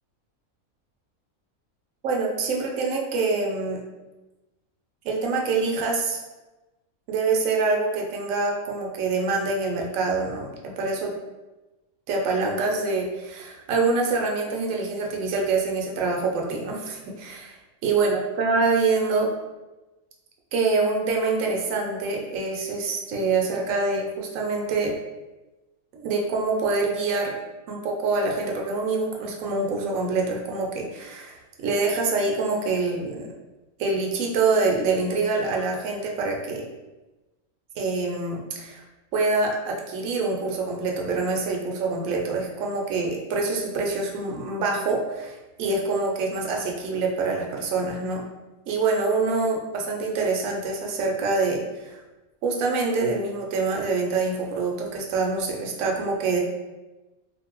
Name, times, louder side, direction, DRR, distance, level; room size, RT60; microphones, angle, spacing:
voice 1, 2.0-3.8 5.0-6.2 7.1-11.1 12.1-19.3 20.5-25.0 25.9-27.3 27.7-33.3 33.8-36.7 37.8-38.8 39.1-48.2 48.7-52.0 52.4-56.4, right 3 dB, 75° right, 0 dB, 1.0 m, -25 dB
2.7 x 2.6 x 2.9 m, 1.1 s
omnidirectional pair, 1.5 m